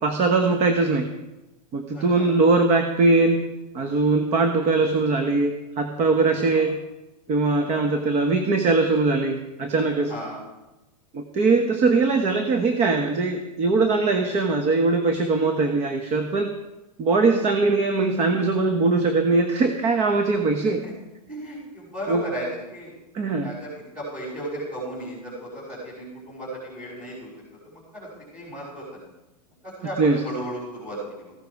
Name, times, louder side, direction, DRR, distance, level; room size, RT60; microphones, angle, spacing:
voice 1, 0.0-1.1 1.7-3.4 3.7-6.8 7.3-10.1 11.1-16.5 17.0-20.8 22.1-22.2 23.1-23.5 30.0-30.2, right 3 dB, 30° right, 6 dB, 1.2 m, -21 dB
voice 2, 1.9-2.3 6.3-6.6 10.1-10.4 17.1-17.3 20.7-20.9 21.3-22.9 23.4-27.3 27.7-29.1 29.6-31.3, right 1 dB, 10° right, -8 dB, 5.5 m, -35 dB
15.0 x 11.5 x 4.8 m, 1.0 s
hypercardioid pair, 125°, 21 cm